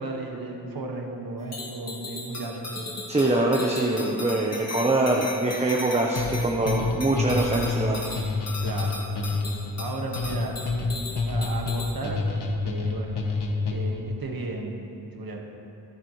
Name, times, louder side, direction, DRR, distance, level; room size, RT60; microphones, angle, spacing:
voice 1, 0.0-2.7 8.6-10.6 11.3-15.4, right 2 dB, 55° right, 0 dB, 1.9 m, -35 dB
sound 1, 1.5-12.0, left 3 dB, 40° left, 2.1 m, -37 dB
voice 2, 3.1-8.0, right 2 dB, 15° right, -1 dB, 0.9 m, -24 dB
sound 2, 6.2-14.1, left 3 dB, 70° left, 1.6 m, -28 dB
26.0 x 10.0 x 3.3 m, 2.8 s
wide cardioid pair, 150°, 41 cm